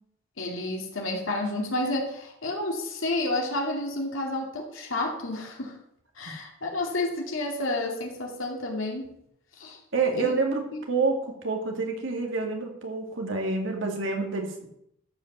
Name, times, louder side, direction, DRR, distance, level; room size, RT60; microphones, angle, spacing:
voice 1, 0.4-5.7 6.2-9.1 9.6-9.8 10.1-10.4 10.7-10.8, left 2 dB, 75° left, 0 dB, 2.6 m, -30 dB
voice 2, 9.9-14.7, right 3 dB, 70° right, 2 dB, 2.3 m, -28 dB
13.5 x 5.3 x 6.8 m, 0.76 s
head